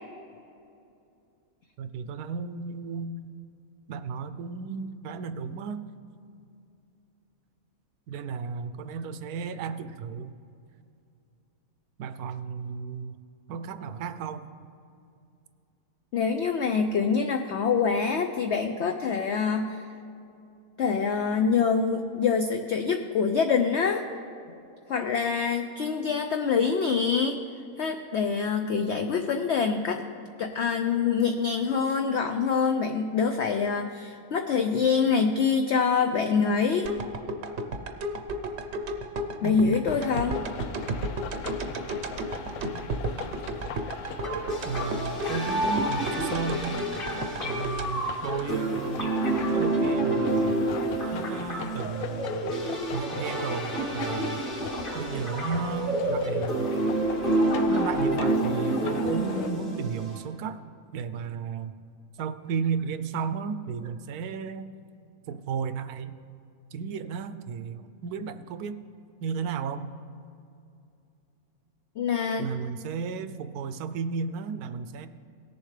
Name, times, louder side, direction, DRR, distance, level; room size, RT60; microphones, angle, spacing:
voice 1, 1.8-3.2 3.9-5.9 8.1-10.4 12.0-13.2 13.5-14.5 39.4-39.8 44.6-46.8 47.4-49.1 49.5-50.7 51.1-54.5 54.9-56.7 57.6-60.6 60.9-61.7 62.2-64.7 65.3-66.2 66.7-68.8 69.2-69.9 72.4-75.1, right 6 dB, 85° right, 11 dB, 1.1 m, -34 dB
voice 2, 16.1-19.9 20.8-24.0 24.9-27.4 27.8-30.0 30.4-36.9 39.4-40.4 72.0-72.5, left 5 dB, 65° left, 6 dB, 0.7 m, -25 dB
sound 1, 36.8-49.0 49.5-49.6, right 1 dB, 55° right, 0.9 m, -34 dB
sound 2, 39.9-59.5, left 7 dB, 80° left, 1.1 m, -41 dB
sound 3, 44.2-60.2, right 1 dB, 35° left, 2.2 m, -28 dB
18.0 x 7.1 x 3.3 m, 2.6 s
omnidirectional pair, 1.6 m